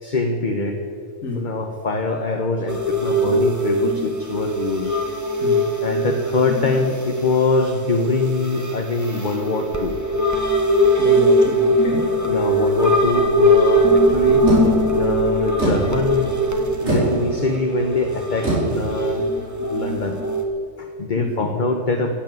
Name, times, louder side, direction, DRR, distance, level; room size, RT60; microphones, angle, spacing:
voice 1, 0.0-0.8 1.3-5.0 5.8-10.0 12.3-14.5 14.9-16.3 16.8-19.2 19.7-20.2 20.8-22.2, left 3 dB, 40° left, 3 dB, 1.2 m, -23 dB
sound 1, 2.7-20.4, equal, 15° right, 1.5 m, -21 dB
voice 2, 11.0-12.2 21.1-21.5, left 2 dB, 75° left, 3 dB, 2.3 m, -29 dB
sound 2, 14.4-20.0, right 2 dB, 75° right, 5.5 m, -26 dB
16.0 x 8.3 x 9.2 m, 2.3 s
omnidirectional pair, 1.4 m